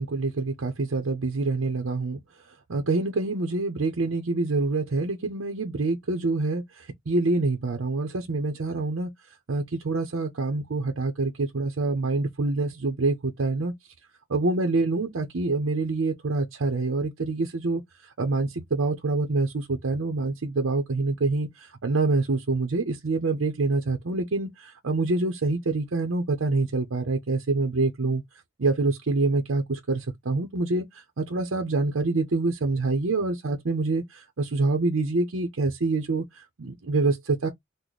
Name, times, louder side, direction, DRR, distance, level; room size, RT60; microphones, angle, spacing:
voice 1, 0.0-2.2 2.7-9.1 9.5-13.7 14.3-17.8 18.2-28.2 28.6-37.5, right 3 dB, 70° right, 0.7 m, -26 dB
4.0 x 2.1 x 3.1 m
head